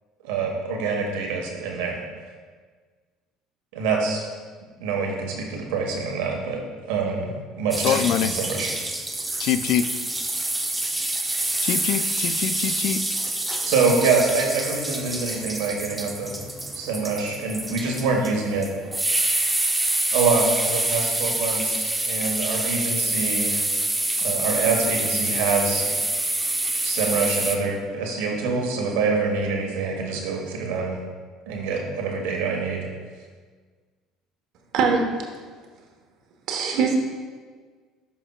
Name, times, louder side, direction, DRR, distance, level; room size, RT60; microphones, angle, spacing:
voice 1, 0.2-2.0 3.7-4.3 4.8-6.6 6.9-8.7 13.7-16.3 16.7-18.7 20.1-23.6 24.2-25.9 26.8-31.0 31.5-32.9, right 4 dB, 85° right, 0 dB, 1.4 m, -25 dB
sound 1, 7.7-27.6, right 2 dB, 10° right, 0.8 m, -26 dB
voice 2, 7.8-8.3 9.4-9.9 11.6-13.0, left 10 dB, 65° left, 12 dB, 0.4 m, -24 dB
voice 3, 34.7-35.1 36.5-37.0, right 5 dB, 65° right, 2 dB, 1.2 m, -21 dB
12.0 x 5.3 x 2.4 m, 1.5 s
supercardioid pair, 95°, 0 cm